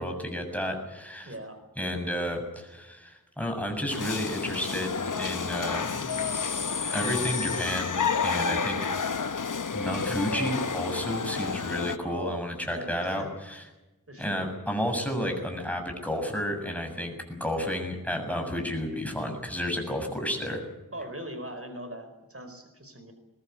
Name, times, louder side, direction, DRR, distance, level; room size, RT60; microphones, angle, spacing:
voice 1, 0.0-1.3 1.8-6.3 6.9-8.8 9.1-9.2 9.7-13.6 14.2-20.6, equal, 5° left, 4 dB, 7.2 m, -31 dB
voice 2, 1.2-1.6 12.0-13.3 14.1-14.5 20.9-23.1, right 1 dB, 45° right, 7 dB, 4.6 m, -40 dB
sound 1, 3.9-12.0, left 5 dB, 70° left, 0.8 m, -30 dB
22.0 x 21.5 x 8.2 m, 1.1 s
wide cardioid pair, 45°, 33 cm